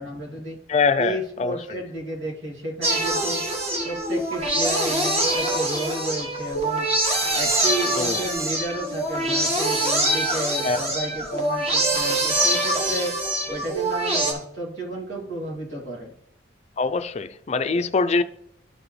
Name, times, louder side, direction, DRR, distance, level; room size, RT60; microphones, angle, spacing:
voice 1, 0.0-0.6 1.0-3.4 3.8-6.9 7.3-13.1 13.5-16.1, right 1 dB, 80° right, 2.5 m, -32 dB
voice 2, 0.7-1.8 8.0-8.2 10.6-10.8 16.8-18.2, left 4 dB, 35° left, 0.4 m, -23 dB
sound 1, 2.8-14.3, right 1 dB, 35° right, 1.5 m, -24 dB
12.0 x 4.8 x 3.2 m
head